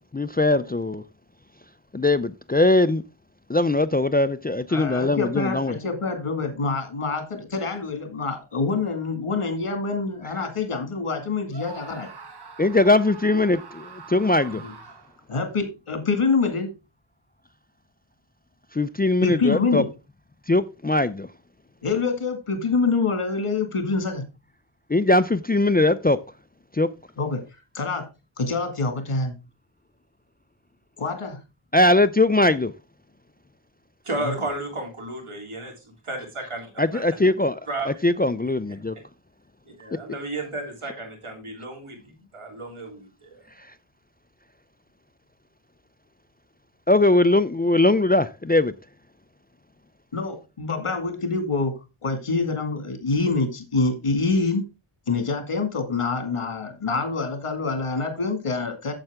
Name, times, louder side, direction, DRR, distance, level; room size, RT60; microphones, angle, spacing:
voice 1, 0.1-1.0 1.9-3.0 3.5-5.8 12.6-14.6 18.7-19.8 20.5-21.3 24.9-26.2 26.7-26.9 31.7-32.7 36.8-37.6 37.9-39.0 46.9-48.7, left 2 dB, 20° left, 0.4 m, -20 dB
voice 2, 4.7-12.1 14.5-14.7 15.3-16.7 19.2-19.9 21.8-24.3 27.2-27.4 27.7-28.1 28.4-29.3 31.0-31.4 34.2-34.3 50.1-51.7 52.0-54.6 55.1-58.9, left 4 dB, 85° left, 2.2 m, -26 dB
Screaming, 11.5-15.3, right 5 dB, 50° right, 1.3 m, -43 dB
voice 3, 34.0-37.0 37.7-37.9 38.9-39.0 39.7-43.4, right 2 dB, 80° right, 3.3 m, -33 dB
9.0 x 7.8 x 3.6 m
wide cardioid pair, 75°, 50 cm